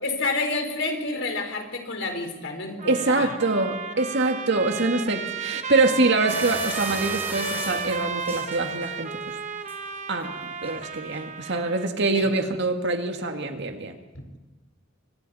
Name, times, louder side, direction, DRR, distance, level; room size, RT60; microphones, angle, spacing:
voice 1, 0.0-3.3 12.1-12.3, left 3 dB, 65° left, 3 dB, 4.4 m, -29 dB
Trumpet, 2.8-11.9, right 5 dB, 35° right, 1.1 m, -33 dB
voice 2, 2.9-9.4 10.1-10.4 10.6-14.0, right 2 dB, 60° right, 5 dB, 2.1 m, -24 dB
sound 1, 6.3-9.1 9.5-10.0 10.6-10.8 11.1-11.2, right 2 dB, 10° right, 2.6 m, -37 dB
26.5 x 26.0 x 4.3 m, 1.1 s
head